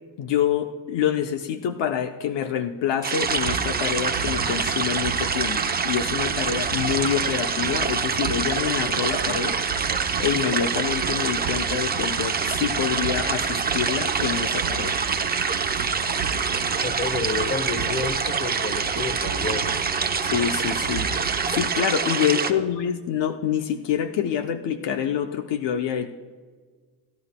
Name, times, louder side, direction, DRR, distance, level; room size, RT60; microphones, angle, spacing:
voice 1, 0.2-9.6 9.8-15.0 20.2-21.1 21.5-26.1, left 9 dB, 65° left, 8 dB, 0.7 m, -26 dB
sound 1, 3.0-22.5, right 5 dB, 20° right, 0.6 m, -26 dB
sound 2, 3.2-21.7, right 7 dB, 80° right, 0.8 m, -35 dB
voice 2, 16.8-19.7 22.5-22.7, left 4 dB, 25° left, 10 dB, 1.1 m, -30 dB
27.5 x 10.5 x 2.2 m, 1.5 s
cardioid pair, 90°, 46 cm